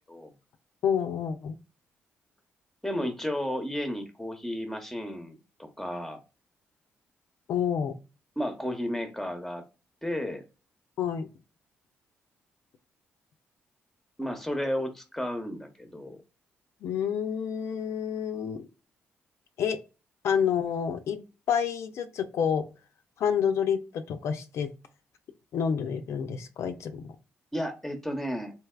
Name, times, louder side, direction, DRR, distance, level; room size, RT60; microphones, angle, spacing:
voice 1, 0.8-1.6 7.5-8.0 11.0-11.3 16.8-18.7 19.6-19.8 20.2-21.2 21.5-22.6 23.2-24.7 25.5-27.1, left 7 dB, 75° left, 7 dB, 0.4 m, -28 dB
voice 2, 2.8-6.2 8.4-9.7 10.0-10.4 14.2-16.2 27.5-28.5, equal, 5° left, 6 dB, 0.7 m, -33 dB
3.3 x 2.7 x 2.3 m, 0.30 s
cardioid pair, 70°, 5 cm